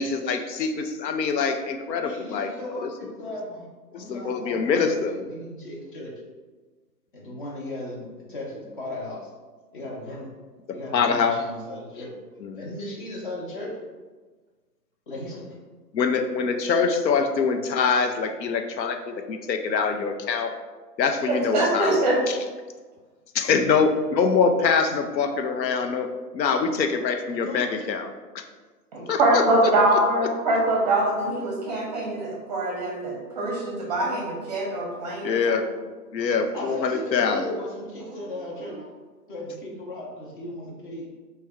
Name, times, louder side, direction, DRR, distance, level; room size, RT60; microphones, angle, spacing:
voice 1, 0.0-3.1 3.9-5.1 10.7-11.4 12.4-12.6 15.9-20.5 21.0-22.4 23.3-26.1 26.3-28.1 28.3-28.4 29.1-29.4 29.9-30.3 35.2-35.6 36.1-37.4, left 5 dB, 90° left, 6 dB, 0.6 m, -24 dB
voice 2, 2.0-3.6 3.9-6.1 7.1-9.3 9.7-10.3 10.7-12.1 12.6-13.9 15.1-15.4 27.4-27.7 36.5-38.8 39.3-41.1, left 1 dB, 30° left, -3 dB, 0.6 m, -36 dB
voice 3, 21.3-22.2 28.9-35.6, right 1 dB, 25° right, -2 dB, 0.6 m, -24 dB
3.2 x 2.2 x 3.4 m, 1.4 s
hypercardioid pair, 145°, 49 cm